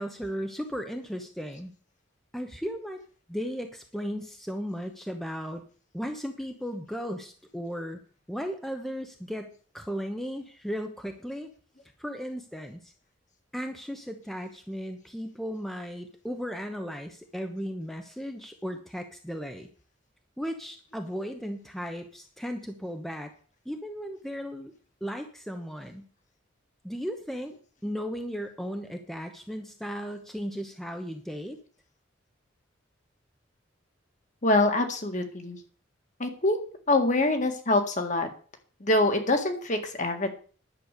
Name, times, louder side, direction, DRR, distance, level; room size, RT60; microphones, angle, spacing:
voice 1, 0.0-1.7 2.3-3.0 3.3-5.6 5.9-8.0 8.3-11.5 12.0-12.9 13.5-19.7 20.4-23.3 23.6-24.7 25.0-26.1 26.8-27.5 27.8-31.6, equal, ahead, 5 dB, 0.9 m, -36 dB
voice 2, 34.4-35.6 36.2-36.6 36.9-38.3 38.8-40.3, left 2 dB, 40° left, 6 dB, 1.9 m, -25 dB
11.0 x 8.0 x 6.7 m, 0.42 s
head